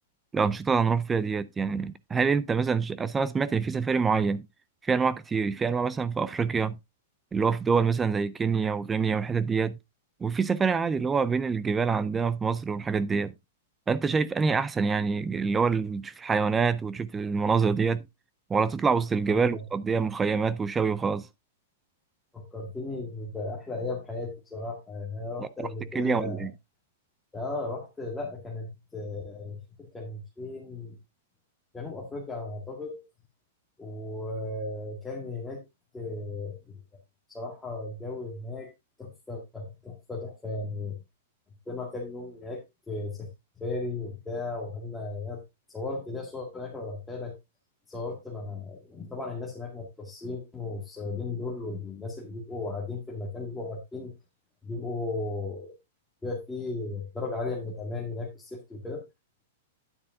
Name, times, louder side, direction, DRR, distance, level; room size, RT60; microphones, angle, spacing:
voice 1, 0.3-4.5 4.8-6.8 7.3-9.8 10.2-13.3 13.9-18.0 18.5-21.3 25.9-26.5, right 5 dB, 10° right, 0.4 m, -26 dB
voice 2, 19.3-19.6 22.3-26.5 27.3-30.9 31.7-33.0 33.8-35.6 35.9-36.8 37.3-38.7 39.0-41.0 41.7-43.3 43.6-45.4 45.7-47.4 47.9-54.1 54.6-55.7 56.2-59.0, left 3 dB, 10° left, 1.9 m, -36 dB
9.7 x 8.5 x 2.6 m
hypercardioid pair, 150°, 0 cm